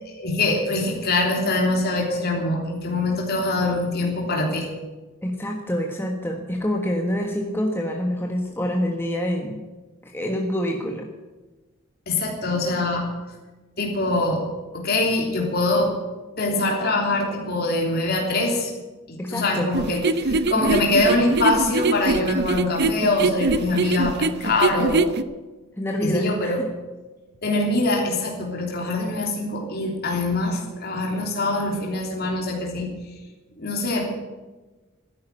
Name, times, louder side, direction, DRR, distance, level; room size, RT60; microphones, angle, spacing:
voice 1, 0.2-4.7 12.1-13.1 13.8-14.4 14.7-15.9 16.4-18.7 19.1-25.0 26.0-26.6 27.4-32.9 33.6-34.1, left 2 dB, 50° left, 0 dB, 3.3 m, -23 dB
voice 2, 5.2-9.6 10.0-11.1 19.2-19.7 25.8-26.7, equal, 10° left, 1 dB, 1.4 m, -26 dB
troppe-stelle, 19.7-25.2, right 3 dB, 55° right, 0.7 m, -22 dB
13.0 x 10.5 x 9.8 m, 1.2 s
head